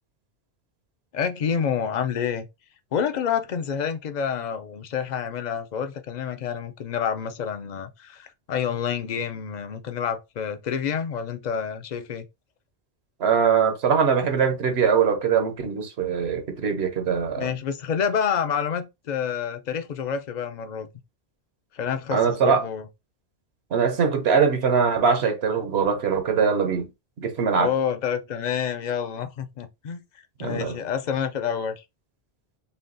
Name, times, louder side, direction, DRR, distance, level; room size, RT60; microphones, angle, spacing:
voice 1, 1.1-2.5 2.9-12.2 17.4-20.9 21.7-22.9 27.6-30.0 30.4-31.8, left 7 dB, 50° left, 0.6 m, -28 dB
voice 2, 13.2-17.5 22.1-22.6 23.7-26.9 27.2-27.7 30.4-30.8, right 6 dB, 80° right, 1.1 m, -22 dB
5.5 x 2.3 x 2.5 m
omnidirectional pair, 1.1 m